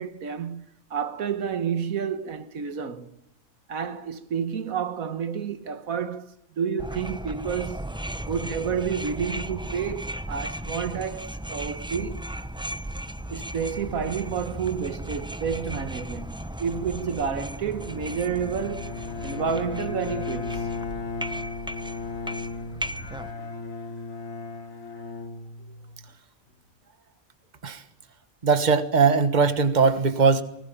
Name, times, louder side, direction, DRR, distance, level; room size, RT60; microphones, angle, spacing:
voice 1, 0.0-3.2 3.7-7.8 8.3-12.3 13.3-16.3 16.6-18.9 19.2-20.7, right 7 dB, 80° right, 1.6 m, -30 dB
sound 1, 6.8-23.3, right 1 dB, 5° right, 0.4 m, -36 dB
Bowed string instrument, 17.6-26.1, left 4 dB, 75° left, 2.9 m, -35 dB
voice 2, 28.4-30.4, right 5 dB, 35° right, 1.5 m, -20 dB
20.5 x 18.5 x 9.1 m
omnidirectional pair, 1.4 m